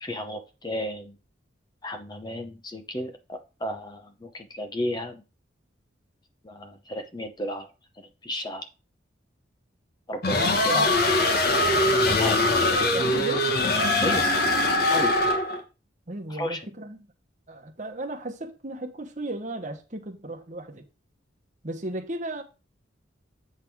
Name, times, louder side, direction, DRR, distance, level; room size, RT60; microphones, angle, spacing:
voice 1, 0.0-1.2 1.8-5.2 6.4-7.7 8.0-8.7 10.1-10.9 11.2-11.4 12.2-12.5 14.0-14.3 14.9-15.1 16.3-16.6, left 1 dB, 20° left, 0.8 m, -33 dB
sound 1, 10.2-15.6, left 2 dB, 55° left, 1.3 m, -22 dB
voice 2, 12.7-13.5 16.1-17.0 17.5-20.8 21.6-22.4, right 1 dB, 40° right, 1.2 m, -35 dB
8.6 x 3.7 x 6.1 m
head